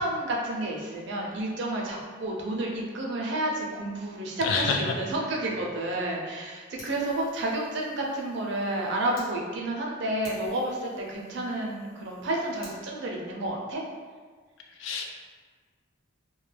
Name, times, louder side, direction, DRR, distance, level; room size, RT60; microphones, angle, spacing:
voice 1, 0.0-13.8, right 1 dB, 60° right, -1 dB, 0.5 m, -30 dB
voice 2, 4.4-4.9 14.8-15.1, left 4 dB, 70° left, 1 dB, 0.4 m, -27 dB
Fire, 6.8-9.3 9.8-9.9 10.2-12.8, left 1 dB, 85° left, 1.0 m, -52 dB
2.2 x 2.2 x 3.2 m, 1.5 s
head